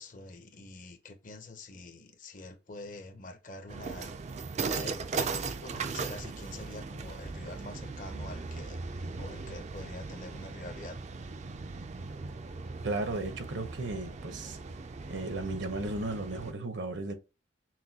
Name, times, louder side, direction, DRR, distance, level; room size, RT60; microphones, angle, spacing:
voice 1, 0.0-4.1 4.6-11.0, left 2 dB, 45° left, 0.7 m, -46 dB
sound 1, 3.7-16.5, right 4 dB, 35° right, 0.4 m, -38 dB
voice 2, 12.8-14.6 15.1-17.1, right 2 dB, 75° right, 0.9 m, -35 dB
6.0 x 2.2 x 2.8 m
head